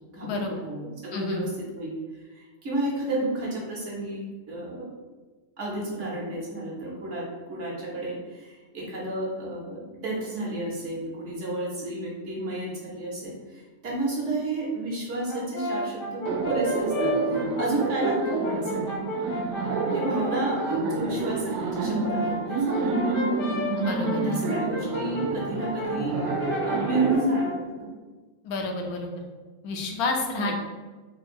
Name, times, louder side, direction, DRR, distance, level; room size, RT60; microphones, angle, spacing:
voice 1, 0.1-1.5 1.8-4.9 5.6-19.0 19.9-23.5 24.2-26.1 26.6-27.9 30.3-30.5, right 2 dB, 55° right, -5 dB, 1.3 m, -31 dB
voice 2, 1.1-1.4 23.8-24.4 28.4-29.1 29.6-30.5, left 3 dB, 80° left, 2 dB, 1.1 m, -30 dB
Brass instrument, 15.3-20.8 21.8-27.6, left 1 dB, 60° left, 0.6 m, -33 dB
Laughter, 16.3-27.2, right 3 dB, 80° right, 1.1 m, -28 dB
3.7 x 2.3 x 4.3 m, 1.3 s
omnidirectional pair, 1.6 m